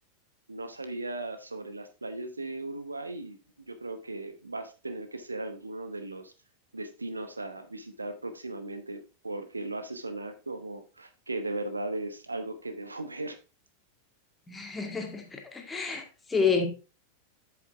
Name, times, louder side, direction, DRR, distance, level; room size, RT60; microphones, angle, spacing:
voice 1, 0.5-3.4 3.7-6.3 6.7-13.4, right 2 dB, 80° right, 1.0 m, -37 dB
voice 2, 14.5-16.0 16.3-16.7, left 5 dB, 10° left, 2.2 m, -29 dB
8.2 x 7.0 x 3.5 m
figure-of-eight pair, 90°, 0 cm